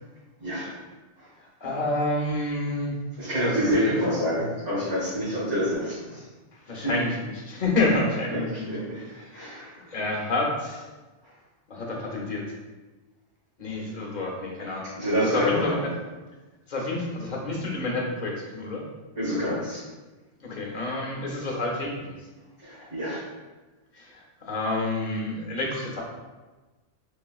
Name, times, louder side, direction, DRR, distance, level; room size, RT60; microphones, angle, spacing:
voice 1, 0.4-0.7 1.2-1.3 3.2-6.2 6.8-6.9 8.3-8.4 8.7-8.9 9.3-9.9 15.0-15.7 19.2-19.8 22.6-23.2, equal, 85° right, -14 dB, 2.0 m, -27 dB
voice 2, 1.4-2.9 3.6-4.0 6.7-9.6 9.9-10.8 11.7-12.5 13.6-15.8 16.7-18.8 20.4-22.1 23.9-26.0, left 2 dB, 45° left, -2 dB, 0.8 m, -29 dB
4.6 x 2.9 x 2.4 m, 1.2 s
omnidirectional pair, 1.1 m